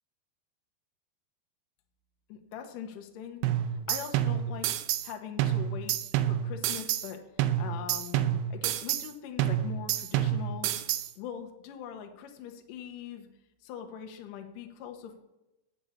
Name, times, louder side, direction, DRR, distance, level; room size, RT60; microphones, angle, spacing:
voice 1, 2.3-3.4 3.9-4.7 5.0-6.0 6.3-7.2 7.6-10.7 11.1-13.3 13.6-15.2, left 8 dB, 70° left, 4 dB, 2.1 m, -42 dB
sound 1, 3.4-5.1 5.4-7.1 7.4-9.1 9.4-11.1, right 11 dB, 85° right, 2.8 m, -29 dB
8.4 x 7.1 x 7.0 m, 0.95 s
omnidirectional pair, 4.9 m